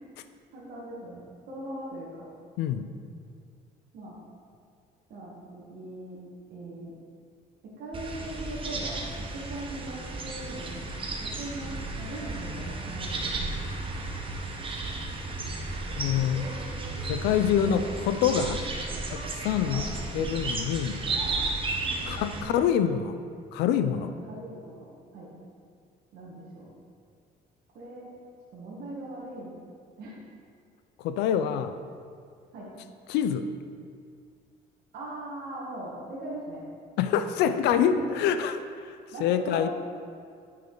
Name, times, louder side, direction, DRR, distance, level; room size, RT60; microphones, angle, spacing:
voice 1, 0.5-2.3 3.9-4.2 5.1-6.2 6.5-6.9 7.6-10.8 11.2-13.7 16.4-17.4 17.6-17.7 19.6-19.8 22.0-22.8 24.0-25.3 26.1-26.7 27.7-28.1 28.5-29.5 30.0-30.2 32.5-32.7 34.9-36.6 37.7-38.1 39.1-39.7, right 1 dB, 70° right, -6 dB, 1.7 m, -40 dB
voice 2, 2.6-2.9 16.0-16.4 17.1-18.6 19.0-19.9 20.1-21.0 22.1-23.2 23.5-24.1 31.0-31.8 33.1-33.5 37.0-38.6 38.8-39.7, left 9 dB, 85° left, 10 dB, 0.5 m, -26 dB
sound 1, 7.9-22.4, right 3 dB, 30° right, 1.0 m, -34 dB
9.1 x 5.3 x 3.9 m, 2.3 s
cardioid pair, 110°, 17 cm